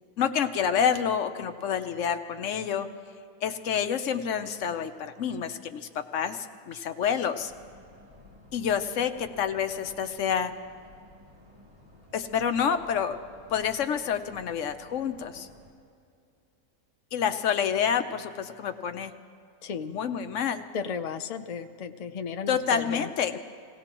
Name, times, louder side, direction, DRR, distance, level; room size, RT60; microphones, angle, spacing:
voice 1, 0.2-2.9 3.4-7.5 8.5-10.5 12.1-13.2 13.5-15.5 17.1-19.1 19.9-20.6 22.5-23.3, left 7 dB, 60° left, 8 dB, 1.0 m, -28 dB
sound 1, 7.4-15.7, left 1 dB, 30° right, 4.7 m, -54 dB
voice 2, 19.6-20.0 20.7-23.4, left 6 dB, 85° left, 7 dB, 0.3 m, -35 dB
26.5 x 17.5 x 3.0 m, 2.5 s
omnidirectional pair, 1.6 m